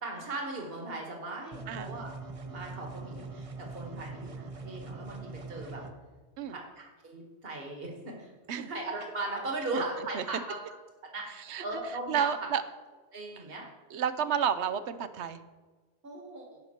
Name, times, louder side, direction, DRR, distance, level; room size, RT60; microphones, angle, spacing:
voice 1, 0.0-2.1 2.4-5.8 6.5-8.3 8.6-10.6 11.1-11.3 11.6-12.3 13.1-13.7 16.0-16.5, right 2 dB, 60° right, 0 dB, 2.0 m, -38 dB
sound 1, 1.5-5.9, right 3 dB, 35° right, 0.8 m, -42 dB
voice 2, 1.7-2.0 6.4-6.6 8.5-8.7 9.7-9.8 10.1-10.2 11.5-11.6 12.1-12.6 13.9-15.4, right 8 dB, 85° right, 11 dB, 1.0 m, -30 dB
17.0 x 5.8 x 4.4 m, 1.4 s
omnidirectional pair, 1.1 m